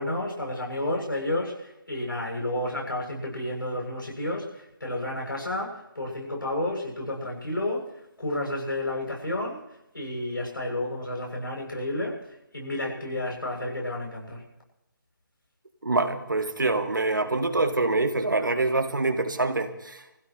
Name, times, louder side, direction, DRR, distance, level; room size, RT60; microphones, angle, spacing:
voice 1, 0.0-7.9 8.2-14.4, left 1 dB, 75° left, -1 dB, 7.6 m, -31 dB
voice 2, 15.8-20.0, right 2 dB, 65° right, 7 dB, 2.0 m, -25 dB
25.0 x 15.5 x 3.2 m, 0.91 s
figure-of-eight pair, 150°, 11 cm